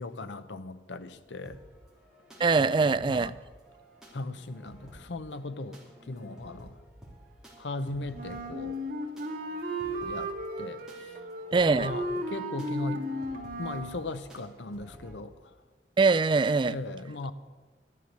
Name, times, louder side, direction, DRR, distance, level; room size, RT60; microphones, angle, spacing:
voice 1, 0.0-1.6 2.6-3.4 4.1-5.8 6.1-6.7 7.6-8.8 10.0-10.3 10.6-10.8 11.7-13.0 13.6-15.3 16.6-17.3, left 2 dB, 85° left, 0.8 m, -37 dB
sound 1, 1.4-15.2, equal, 5° right, 3.1 m, -52 dB
voice 2, 2.4-3.3 11.5-11.9 16.0-16.8, right 4 dB, 25° right, 0.3 m, -23 dB
Wind instrument woodwind instrument, 8.1-14.0, equal, 55° right, 2.0 m, -35 dB
12.5 x 11.0 x 6.6 m
head